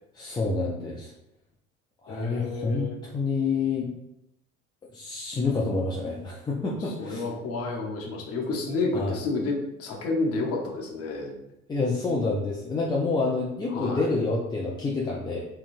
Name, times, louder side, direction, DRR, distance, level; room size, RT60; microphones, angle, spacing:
voice 1, 0.2-1.1 2.0-3.9 4.9-7.3 8.9-9.2 11.7-15.5, left 3 dB, 10° left, -3 dB, 0.3 m, -28 dB
voice 2, 2.1-3.0 7.0-11.3 13.7-14.1, left 3 dB, 40° left, 0 dB, 0.9 m, -30 dB
3.7 x 2.2 x 2.5 m, 0.86 s
hypercardioid pair, 70°, 37 cm